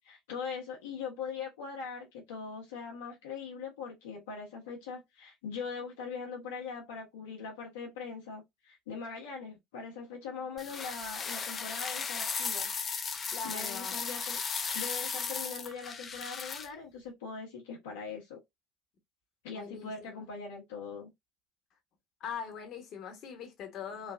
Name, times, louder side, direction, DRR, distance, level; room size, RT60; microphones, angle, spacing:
voice 1, 0.0-12.7 13.4-14.4 14.7-18.4 19.4-21.1, left 5 dB, 75° left, 1.0 m, -41 dB
sound 1, 10.6-16.7, left 5 dB, 35° left, 0.6 m, -36 dB
voice 2, 13.3-13.9 19.5-20.2 22.2-24.1, left 6 dB, 50° left, 1.1 m, -41 dB
3.2 x 2.3 x 2.5 m
hypercardioid pair, 70°, 0 cm